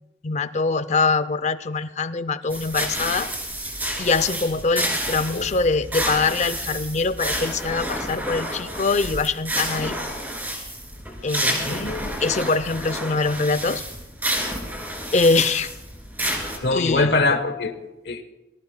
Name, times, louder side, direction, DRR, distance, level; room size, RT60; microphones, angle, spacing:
voice 1, 0.2-3.3 4.0-10.0 11.2-11.9 12.2-13.8 15.1-15.7 16.7-17.2, left 4 dB, 40° left, 15 dB, 0.5 m, -23 dB
sound 1, 2.5-16.6, right 1 dB, 10° right, 2.7 m, -29 dB
voice 2, 11.6-12.2 16.6-18.2, left 3 dB, 65° left, 9 dB, 1.0 m, -23 dB
24.5 x 19.0 x 2.2 m, 1.1 s
head